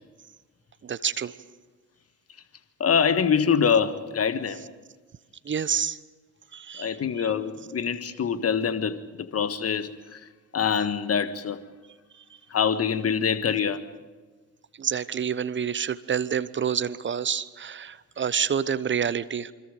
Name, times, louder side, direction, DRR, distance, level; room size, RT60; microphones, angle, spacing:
voice 1, 0.8-1.3 5.4-6.0 6.5-7.3 14.8-19.5, right 7 dB, 25° right, 0.9 m, -28 dB
voice 2, 2.8-4.6 6.8-10.2 10.5-11.6 12.5-13.8, left 7 dB, 30° left, 1.5 m, -25 dB
28.0 x 25.0 x 5.2 m
figure-of-eight pair, 55°, 47 cm